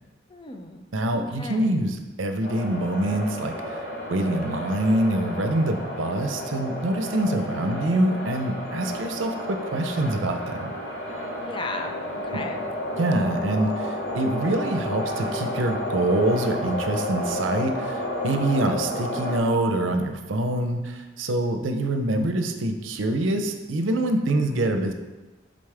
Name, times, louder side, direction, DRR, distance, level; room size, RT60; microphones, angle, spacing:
voice 1, 0.3-0.8 1.1-1.8 11.4-11.9 12.2-12.6, left 2 dB, 25° left, 4 dB, 0.5 m, -36 dB
voice 2, 0.9-3.8 4.1-10.7 12.3-12.4 13.0-24.9, right 1 dB, 85° right, 7 dB, 0.6 m, -25 dB
sound 1, 2.4-19.4, left 1 dB, 65° left, 1.7 m, -31 dB
7.2 x 3.9 x 3.4 m, 1.1 s
head